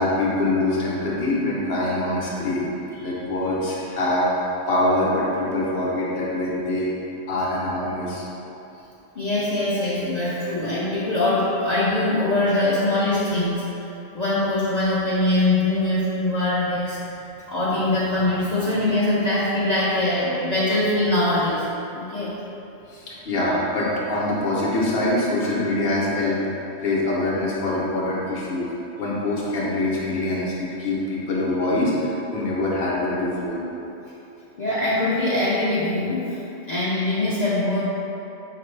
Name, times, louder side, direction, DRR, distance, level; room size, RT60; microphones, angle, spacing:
voice 1, 0.0-2.7 3.0-4.3 4.7-6.9 7.3-8.2 22.9-26.4 26.8-28.7 29.0-33.6, left 1 dB, 60° left, -5 dB, 1.0 m, -24 dB
voice 2, 9.2-13.6 14.1-17.2 17.5-21.7 21.9-22.3 34.6-36.4 36.7-37.8, left 2 dB, 45° left, -10 dB, 0.6 m, -22 dB
5.1 x 2.5 x 3.2 m, 2.9 s
omnidirectional pair, 1.2 m